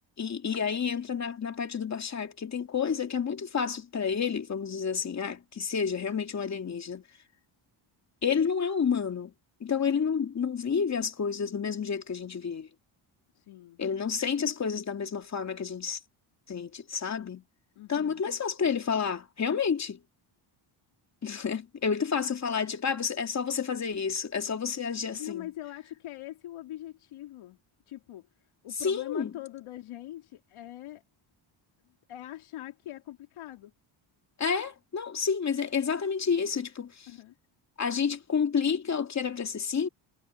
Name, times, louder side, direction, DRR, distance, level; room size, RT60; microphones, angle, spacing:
voice 1, 0.2-7.0 8.2-9.3 9.6-12.7 13.8-16.0 16.5-17.4 17.9-20.0 21.2-25.5 28.8-29.3 34.4-37.1 37.8-39.9, left 6 dB, 35° left, 2.6 m, -30 dB
voice 2, 13.3-13.8 17.8-18.2 25.2-27.6 27.9-31.0 32.1-33.7 37.1-37.4, left 14 dB, 85° left, 3.8 m, -42 dB
cardioid pair, 145°, 48 cm